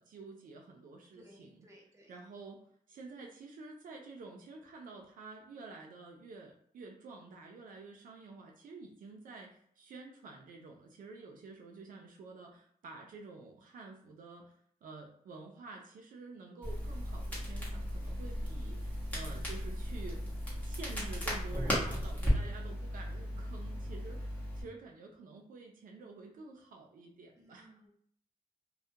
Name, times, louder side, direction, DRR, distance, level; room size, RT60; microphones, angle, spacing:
voice 1, 0.0-1.7 2.1-2.6 2.9-14.6 14.8-20.2 20.6-27.7, right 3 dB, 75° right, 1 dB, 0.4 m, -50 dB
voice 2, 1.1-2.1 27.4-27.9, equal, 20° right, -2 dB, 0.7 m, -59 dB
Crackle, 16.6-24.6, equal, 10° left, 0.9 m, -36 dB
2.3 x 2.1 x 2.7 m, 0.64 s
wide cardioid pair, 140°, 14 cm